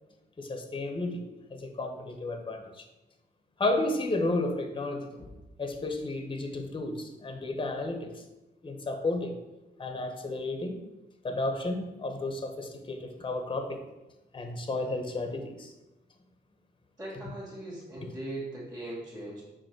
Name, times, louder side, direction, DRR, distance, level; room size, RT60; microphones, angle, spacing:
voice 1, 0.4-1.2 1.5-2.8 3.6-5.3 5.6-8.1 8.6-9.3 9.8-10.8 11.2-13.8 14.3-15.7, left 2 dB, 30° left, 5 dB, 1.0 m, -32 dB
voice 2, 17.0-19.4, right 1 dB, 15° right, -8 dB, 2.1 m, -39 dB
5.3 x 4.2 x 6.0 m, 1.0 s
wide cardioid pair, 110°, 18 cm